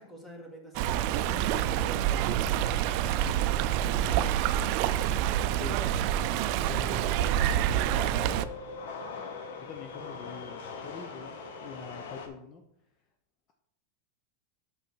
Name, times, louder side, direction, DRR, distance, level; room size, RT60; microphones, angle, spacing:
voice 1, 0.0-3.4 3.8-4.4, equal, 10° left, 1 dB, 1.9 m, -46 dB
Stream, 0.7-8.4, right 11 dB, 50° right, 0.4 m, -27 dB
sound 1, 2.7-12.3, left 4 dB, 75° left, 1.2 m, -44 dB
voice 2, 5.5-5.8 6.6-8.4 9.6-12.6, left 5 dB, 35° left, 4 dB, 0.8 m, -44 dB
6.6 x 6.2 x 4.5 m, 0.77 s
supercardioid pair, 140°, 0 cm